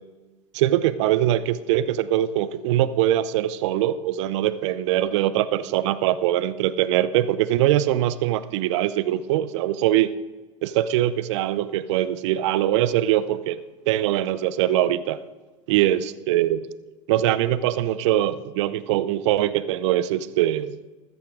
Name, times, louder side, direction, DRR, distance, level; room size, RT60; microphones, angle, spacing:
voice 1, 0.5-10.1 10.6-13.6 13.9-15.2 15.7-16.6 17.1-20.8, right 13 dB, 65° right, 16 dB, 0.7 m, -22 dB
14.0 x 14.0 x 3.8 m, 1.2 s
hypercardioid pair, 85°, 16 cm